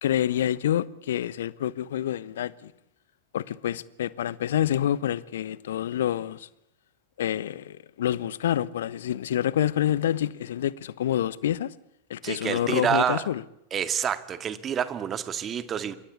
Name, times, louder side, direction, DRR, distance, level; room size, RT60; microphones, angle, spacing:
voice 1, 0.0-2.7 3.3-6.5 7.2-11.7 12.1-13.4, left 11 dB, 60° left, 1.0 m, -27 dB
voice 2, 12.2-13.2 13.7-16.0, right 8 dB, 25° right, 1.9 m, -28 dB
27.0 x 23.5 x 8.4 m
figure-of-eight pair, 90°, 0 cm